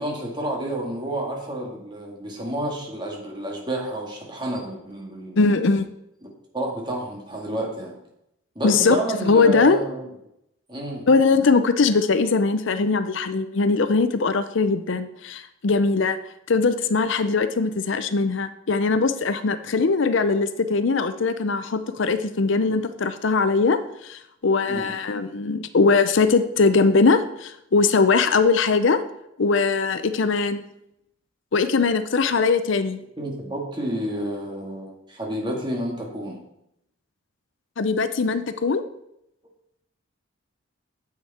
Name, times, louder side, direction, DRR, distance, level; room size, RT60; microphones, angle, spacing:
voice 1, 0.0-5.5 6.2-6.3 6.5-8.0 8.6-10.1 10.7-11.1 24.7-25.0 33.2-36.4, right 1 dB, 20° right, -1 dB, 2.1 m, -30 dB
voice 2, 5.4-5.9 8.6-9.8 11.1-16.2 16.5-29.0 29.4-30.6 31.5-33.0 37.8-38.8, left 4 dB, 65° left, 11 dB, 0.6 m, -21 dB
9.4 x 8.1 x 4.3 m, 0.80 s
head